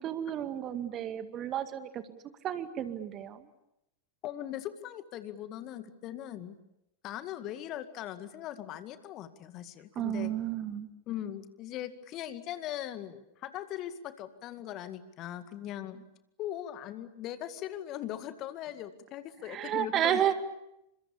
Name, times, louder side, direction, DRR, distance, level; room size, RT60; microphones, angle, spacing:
voice 1, 0.0-2.2 2.4-3.5 10.0-10.9 19.5-20.3, right 11 dB, 30° right, 9 dB, 2.2 m, -32 dB
voice 2, 4.2-6.5 7.0-10.3 11.1-16.0 16.4-20.2, left 12 dB, 35° left, 10 dB, 2.1 m, -40 dB
29.5 x 26.0 x 7.1 m, 0.85 s
figure-of-eight pair, 90°, 0 cm